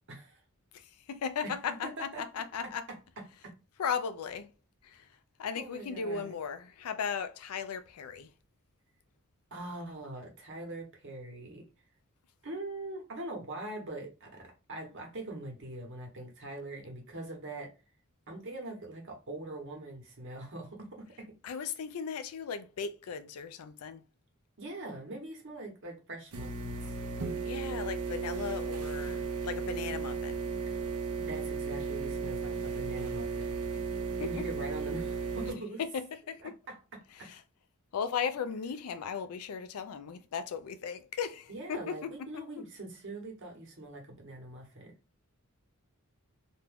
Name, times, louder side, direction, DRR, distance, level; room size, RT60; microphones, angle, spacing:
voice 1, 0.1-0.4 1.4-1.5 1.8-2.3 2.6-3.0 3.4-3.5 5.5-6.3 9.5-11.6 12.4-17.7 18.3-21.3 24.6-27.0 30.7-30.8 31.2-33.5 34.2-35.8 36.4-36.8 37.2-37.3 41.5-44.9, right 2 dB, 60° right, 1.1 m, -42 dB
voice 2, 0.7-2.9 3.8-4.5 4.8-5.1 5.4-8.3 21.4-24.0 27.4-30.4 34.2-34.5 35.8-36.5 37.2-37.4 37.9-42.4, left 6 dB, 85° left, 0.4 m, -37 dB
sound 1, 26.3-35.5, right 5 dB, 90° right, 0.6 m, -35 dB
2.5 x 2.3 x 3.3 m
head